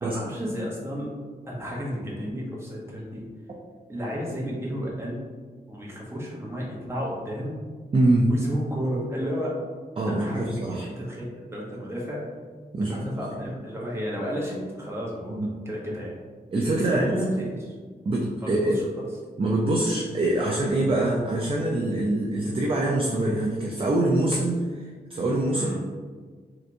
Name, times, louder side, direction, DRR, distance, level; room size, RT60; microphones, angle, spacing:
voice 1, 0.0-1.1 1.5-3.2 3.9-5.2 5.7-7.6 8.3-9.5 10.1-11.2 11.5-12.2 12.8-16.2 16.8-17.8 18.4-18.8 25.5-25.8, equal, 15° right, -4 dB, 0.8 m, -32 dB
voice 2, 7.9-8.3 10.0-10.9 12.7-13.0 15.3-15.5 16.5-17.2 18.1-18.8 19.4-25.8, right 2 dB, 30° right, -2 dB, 0.4 m, -24 dB
3.3 x 2.9 x 2.5 m, 1.5 s
wide cardioid pair, 105°, 17 cm